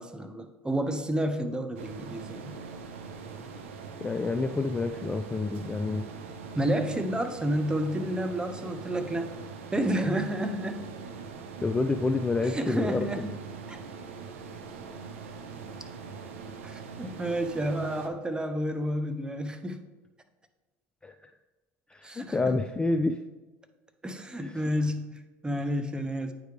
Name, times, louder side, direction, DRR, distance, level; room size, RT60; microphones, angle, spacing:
voice 1, 0.0-2.5 6.5-9.3 9.7-10.9 12.5-13.3 13.7-13.8 16.6-19.8 22.0-22.5 24.0-26.3, right 1 dB, 10° right, 7 dB, 0.7 m, -30 dB
sound 1, 1.8-18.1, right 5 dB, 85° right, 0.6 m, -42 dB
voice 2, 4.0-6.0 11.6-13.3 21.0-21.3 21.9-23.2 24.4-24.6, left 3 dB, 15° left, 7 dB, 0.3 m, -28 dB
9.0 x 3.4 x 3.3 m, 1.2 s
hypercardioid pair, 80°, 7 cm